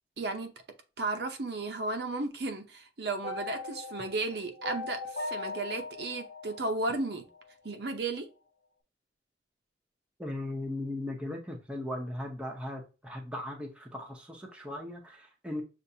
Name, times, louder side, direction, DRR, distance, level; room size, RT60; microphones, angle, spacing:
voice 1, 0.2-0.5 1.0-7.2 7.6-8.3, right 2 dB, 60° right, 0.7 m, -34 dB
sound 1, 3.2-7.4, left 2 dB, 75° left, 0.9 m, -39 dB
voice 2, 10.2-15.6, left 1 dB, 5° right, 0.7 m, -38 dB
6.7 x 2.5 x 2.7 m
head